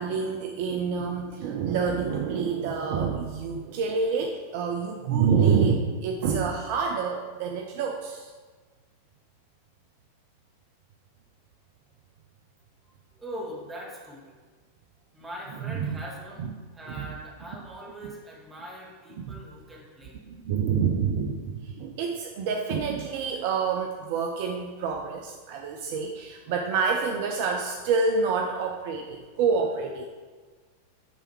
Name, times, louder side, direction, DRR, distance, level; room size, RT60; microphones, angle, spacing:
voice 1, 0.0-8.3 15.6-16.0 16.4-16.5 16.9-17.1 19.2-19.4 20.3-30.1, right 5 dB, 50° right, 2 dB, 0.5 m, -27 dB
voice 2, 13.1-14.4 15.1-16.5 16.7-20.2, equal, 15° right, -4 dB, 1.7 m, -41 dB
8.9 x 3.4 x 4.6 m, 1.4 s
figure-of-eight pair, 90°, 0 cm